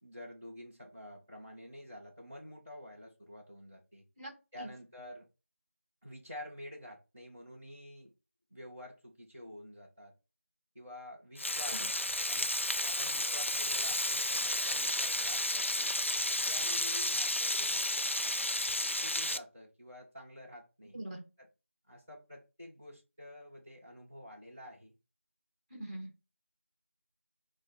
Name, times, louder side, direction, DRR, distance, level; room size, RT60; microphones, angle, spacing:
voice 1, 0.0-4.0 4.5-5.3 6.0-8.1 8.5-10.1 10.7-11.9 12.3-12.5 12.8-15.9 16.3-17.9 18.5-18.6 19.0-21.0 21.4-21.5 21.9-24.9, left 1 dB, 10° left, -8 dB, 0.6 m, -49 dB
Frying (food), 11.4-19.4, left 1 dB, 60° left, 0.4 m, -32 dB
voice 2, 20.9-21.2 25.7-26.1, right 1 dB, 25° right, 3 dB, 1.1 m, -42 dB
5.3 x 2.1 x 4.2 m, 0.29 s
figure-of-eight pair, 175°, 7 cm